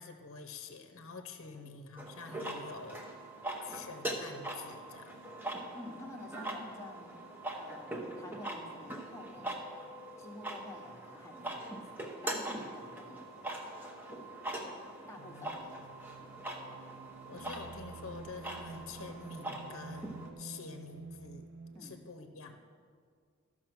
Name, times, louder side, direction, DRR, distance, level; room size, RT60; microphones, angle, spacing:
voice 1, 0.0-3.1 3.6-5.3 15.2-15.6 17.3-21.5 21.8-22.5, left 4 dB, 70° left, 6 dB, 0.7 m, -47 dB
sound 1, 2.0-20.3, right 1 dB, 10° right, 0.8 m, -42 dB
voice 2, 5.7-7.2 7.6-9.6 10.2-11.9 12.2-13.5 15.1-15.9 16.2-16.4 21.7-22.0, left 1 dB, 15° left, 0 dB, 1.0 m, -49 dB
sound 2, 15.5-21.8, right 4 dB, 60° right, 0.4 m, -49 dB
13.0 x 6.0 x 6.0 m, 2.1 s
head